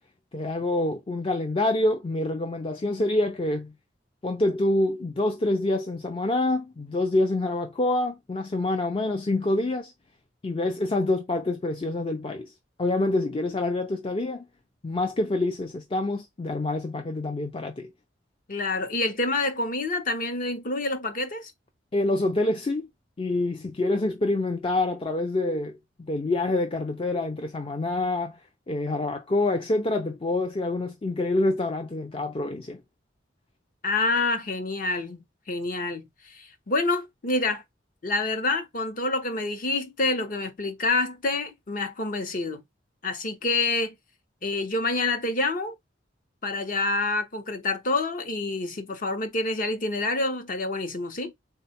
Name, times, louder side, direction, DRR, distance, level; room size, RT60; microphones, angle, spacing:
voice 1, 0.3-3.7 4.2-9.9 10.4-12.5 12.8-14.5 14.8-17.9 21.9-22.9 23.2-28.4 28.7-32.8, left 2 dB, 30° left, 0.5 m, -26 dB
voice 2, 18.5-21.5 33.8-35.2 35.5-37.6 38.0-42.6 43.0-43.9 44.4-45.7 46.4-51.3, left 2 dB, 50° left, 0.8 m, -27 dB
3.7 x 2.3 x 4.1 m
head